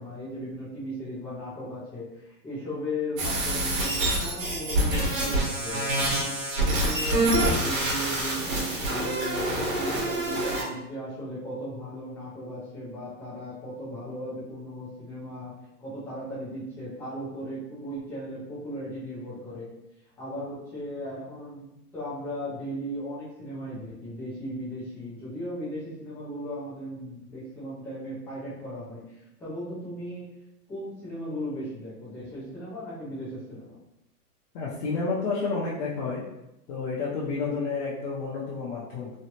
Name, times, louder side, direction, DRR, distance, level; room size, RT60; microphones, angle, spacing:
voice 1, 0.0-6.1 6.6-15.5 15.8-19.7 20.2-29.0 29.4-30.3 30.7-33.8, equal, 5° left, -10 dB, 0.4 m, -36 dB
sound 1, 3.2-10.6, right 1 dB, 50° right, 1.4 m, -26 dB
voice 2, 34.5-36.2 36.7-39.1, left 4 dB, 45° left, -7 dB, 0.8 m, -30 dB
3.2 x 2.3 x 2.8 m, 0.88 s
hypercardioid pair, 140°, 47 cm